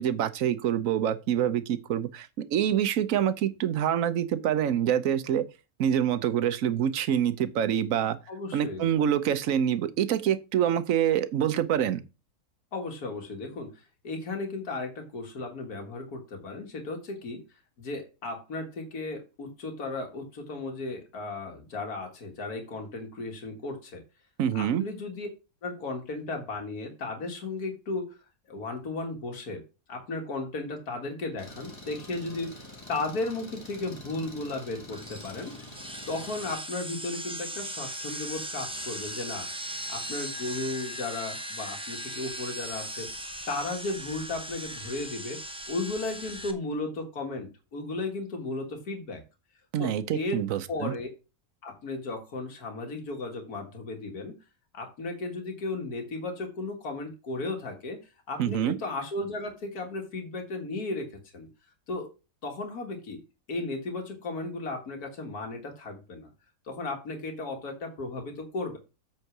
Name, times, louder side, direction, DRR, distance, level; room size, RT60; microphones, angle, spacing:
voice 1, 0.0-5.4 5.8-8.2 8.5-12.0 24.4-24.8 49.7-50.9 58.4-58.8, right 9 dB, 65° right, 1.1 m, -26 dB
voice 2, 8.3-8.9 12.7-17.4 17.8-24.0 24.5-25.3 25.6-28.1 28.5-29.6 29.9-32.6 32.9-35.6 36.1-39.5 39.9-43.1 43.5-49.2 49.8-50.4 50.7-51.1 51.6-54.3 54.7-58.0 58.3-61.1 61.3-61.5 61.9-62.1 62.4-63.2 63.5-66.3 66.7-68.8, left 2 dB, 80° left, 2.2 m, -35 dB
Engine, 31.4-36.5, left 1 dB, 20° left, 1.7 m, -46 dB
sound 1, 34.9-46.5, right 1 dB, 5° right, 0.6 m, -38 dB
8.2 x 4.5 x 6.0 m
omnidirectional pair, 1.6 m